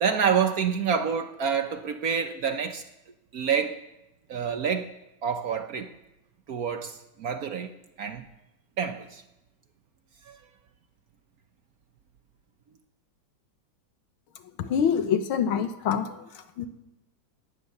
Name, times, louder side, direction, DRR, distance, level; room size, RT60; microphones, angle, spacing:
voice 1, 0.0-2.8 3.3-3.8 4.3-4.9 5.2-5.9 6.5-7.7 8.0-8.2 8.8-9.2 10.3-10.4, right 7 dB, 60° right, 1.0 m, -27 dB
voice 2, 14.6-16.1 16.6-16.7, left 7 dB, 85° left, 1.9 m, -25 dB
17.0 x 9.8 x 6.7 m
omnidirectional pair, 2.2 m